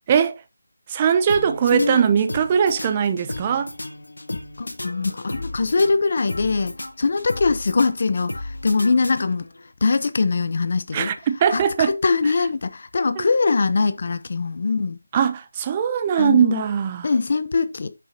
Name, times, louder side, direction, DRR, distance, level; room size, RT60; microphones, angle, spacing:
voice 1, 0.9-3.7 10.9-12.0 13.2-13.3 15.1-17.1, right 7 dB, 20° right, 0.6 m, -20 dB
sound 1, 1.3-9.6, left 2 dB, 90° left, 1.8 m, -35 dB
voice 2, 1.7-2.0 4.6-8.3 8.6-9.5 9.8-11.1 11.5-15.0 16.2-16.6 17.0-17.9, left 4 dB, 45° left, 0.8 m, -22 dB
8.8 x 6.8 x 2.8 m
figure-of-eight pair, 170°, 0 cm